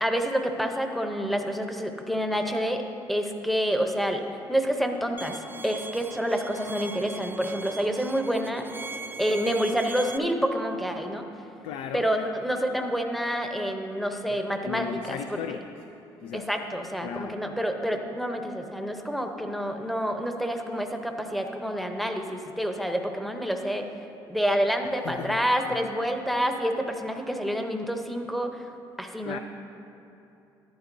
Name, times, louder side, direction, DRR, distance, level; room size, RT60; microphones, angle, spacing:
voice 1, 0.0-2.8 3.1-4.2 4.5-8.6 9.2-11.2 11.9-15.2 16.3-23.9 24.3-28.7 29.0-29.4, equal, ahead, 4 dB, 0.7 m, -28 dB
Bowed string instrument, 5.2-10.2, right 4 dB, 25° right, 0.3 m, -40 dB
voice 2, 11.6-12.1 14.3-15.7 16.2-16.5 17.0-17.4 25.0-25.4 25.7-25.9 29.2-29.4, left 8 dB, 90° left, 7 dB, 0.4 m, -36 dB
11.0 x 11.0 x 2.6 m, 2.9 s
cardioid pair, 120°, 9 cm